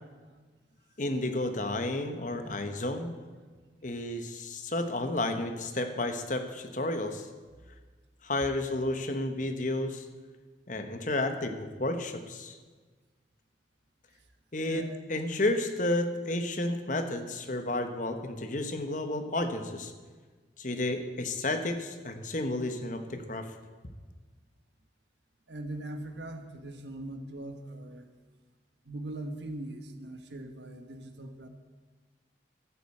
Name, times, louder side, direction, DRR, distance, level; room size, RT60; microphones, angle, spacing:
voice 1, 1.0-3.1 3.8-7.3 8.2-10.0 10.7-12.6 14.5-19.9 20.6-23.5, left 2 dB, 45° left, 7 dB, 1.1 m, -31 dB
voice 2, 25.5-28.1 28.8-31.5, right 1 dB, 70° right, 7 dB, 1.4 m, -41 dB
12.5 x 8.6 x 7.8 m, 1.4 s
head